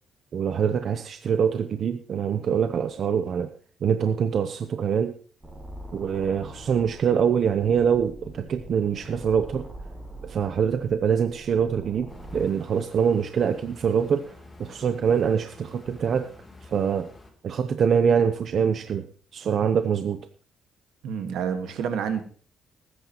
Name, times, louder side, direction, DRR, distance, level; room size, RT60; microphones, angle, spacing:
voice 1, 0.3-3.5 3.8-5.1 5.9-9.7 10.2-14.2 14.6-16.3 16.7-17.1 17.4-19.0 19.3-20.2, right 7 dB, 60° right, 8 dB, 0.8 m, -24 dB
sound 1, 5.4-12.4, right 1 dB, 15° right, 5.8 m, -43 dB
sound 2, 12.1-17.3, left 2 dB, 20° left, 3.1 m, -49 dB
voice 2, 21.0-22.2, right 7 dB, 80° right, 8 dB, 1.7 m, -28 dB
19.0 x 9.9 x 3.0 m, 0.43 s
cardioid pair, 90°, 0 cm